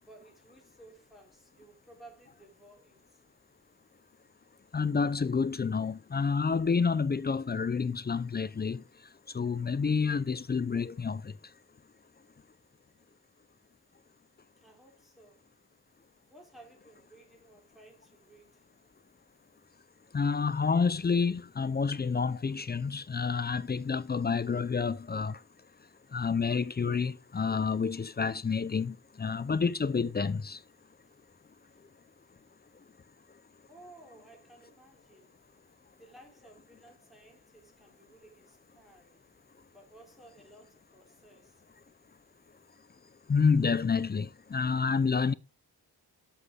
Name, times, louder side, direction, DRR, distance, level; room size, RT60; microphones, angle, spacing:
voice 1, 0.0-3.2 14.6-15.4 16.3-18.7 31.0-31.2 31.7-31.8 33.7-35.4 35.9-39.2 39.7-41.6, right 2 dB, ahead, 3.3 m, -56 dB
voice 2, 4.7-8.8 9.3-11.3 20.1-25.4 26.1-30.6 43.3-45.3, left 5 dB, 25° left, 0.4 m, -29 dB
8.1 x 8.0 x 3.6 m
wide cardioid pair, 165°, 39 cm